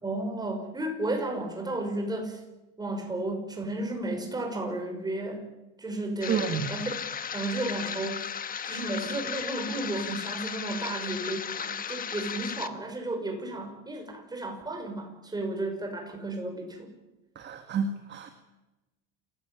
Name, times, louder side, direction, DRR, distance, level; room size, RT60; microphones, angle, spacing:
voice 1, 0.0-2.4 2.8-5.5 5.8-7.0 7.3-8.3 8.6-16.9, right 2 dB, 10° right, 4 dB, 5.9 m, -33 dB
sound 1, 6.2-12.7, left 7 dB, 25° left, 1.3 m, -35 dB
voice 2, 6.3-6.7 17.4-18.3, right 6 dB, 30° right, 7 dB, 1.9 m, -30 dB
28.0 x 16.0 x 9.3 m, 1.0 s
cardioid pair, 145°, 34 cm